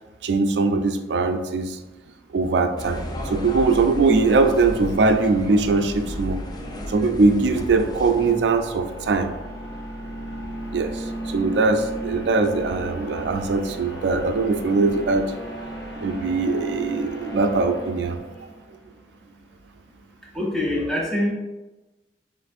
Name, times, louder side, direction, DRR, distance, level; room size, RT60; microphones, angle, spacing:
voice 1, 0.2-1.8 2.3-6.4 6.9-9.3 10.7-15.3 16.0-18.2, right 3 dB, 70° right, 7 dB, 0.4 m, -21 dB
sound 1, 2.8-8.3, left 1 dB, 25° left, 0.4 m, -33 dB
sound 2, 6.0-18.8, right 1 dB, 70° left, 0.9 m, -36 dB
voice 2, 20.3-21.3, left 1 dB, 5° left, -4 dB, 0.8 m, -24 dB
6.5 x 2.5 x 2.5 m, 1.1 s
head